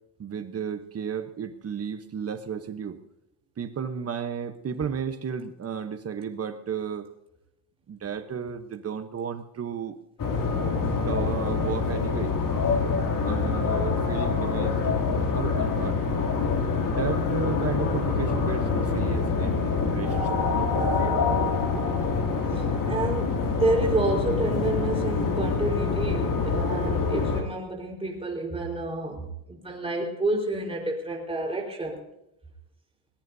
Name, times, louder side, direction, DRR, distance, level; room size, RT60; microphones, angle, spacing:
voice 1, 0.2-3.0 3.6-7.1 7.9-10.0 11.1-12.3 13.2-15.0 15.3-16.0 16.8-20.7 21.0-21.2, right 7 dB, 30° right, 9 dB, 1.0 m, -33 dB
sound 1, 10.2-27.4, left 4 dB, 40° left, 2.9 m, -26 dB
voice 2, 16.2-16.6 22.5-32.0, right 2 dB, 10° right, 0 dB, 4.3 m, -29 dB
21.0 x 20.5 x 2.7 m, 0.85 s
cardioid pair, 150°, 49 cm